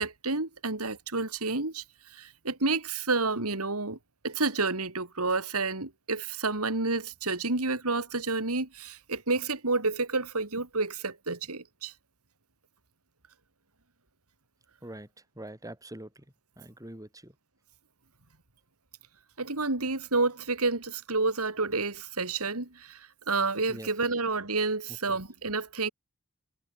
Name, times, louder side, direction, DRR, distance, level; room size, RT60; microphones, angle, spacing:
voice 1, 0.0-1.8 2.1-4.0 4.2-11.9 19.4-25.9, right 3 dB, 75° right, 3.4 m, -30 dB
voice 2, 15.4-16.1 16.6-17.3 23.7-23.9 25.1-25.2, right 1 dB, 15° right, 5.7 m, -43 dB
head